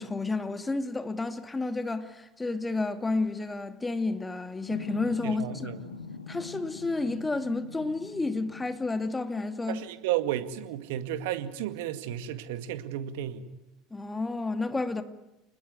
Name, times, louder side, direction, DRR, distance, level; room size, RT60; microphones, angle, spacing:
voice 1, 0.0-5.7 6.3-9.8 13.9-15.0, left 3 dB, 15° left, 2.4 m, -31 dB
sound 1, 4.7-9.1 10.4-10.6 10.9-13.0, left 5 dB, 90° left, 1.9 m, -44 dB
voice 2, 5.2-5.8 9.7-13.5, right 12 dB, 65° right, 2.0 m, -33 dB
28.0 x 20.0 x 9.5 m
figure-of-eight pair, 70°, 0 cm